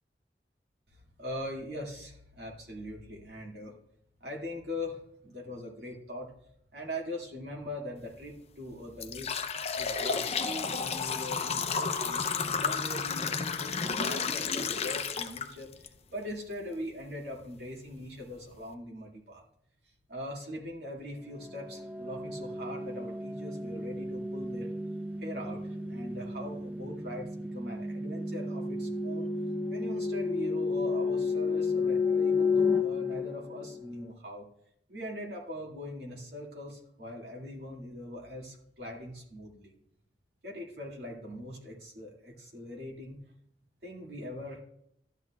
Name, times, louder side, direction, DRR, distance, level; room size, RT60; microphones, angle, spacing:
voice 1, 1.2-3.7 4.2-6.3 6.7-9.3 9.8-19.4 20.1-24.7 25.2-29.3 29.7-34.4 34.9-39.7 40.4-43.2 43.8-44.6, left 1 dB, 65° right, -1 dB, 2.2 m, -41 dB
sound 1, 8.1-8.2 8.7-15.9 16.3-16.4 17.3-17.4 17.9-18.0 18.4-18.7, left 5 dB, 35° left, 0.6 m, -32 dB
sound 2, 21.3-34.0, left 4 dB, 10° right, 0.8 m, -32 dB
12.0 x 8.2 x 2.4 m, 0.71 s
head